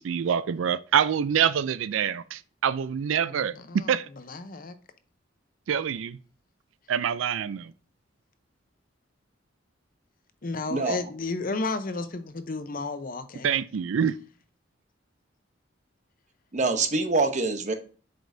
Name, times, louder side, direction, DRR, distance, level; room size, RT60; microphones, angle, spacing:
voice 1, 0.0-4.1 5.7-6.2 6.9-7.7 13.4-14.2, right 8 dB, 75° right, 0.4 m, -26 dB
voice 2, 3.2-4.8 10.4-13.5, left 3 dB, 45° left, 0.7 m, -33 dB
voice 3, 16.5-17.7, right 3 dB, 40° right, 0.8 m, -25 dB
7.6 x 5.1 x 2.6 m
head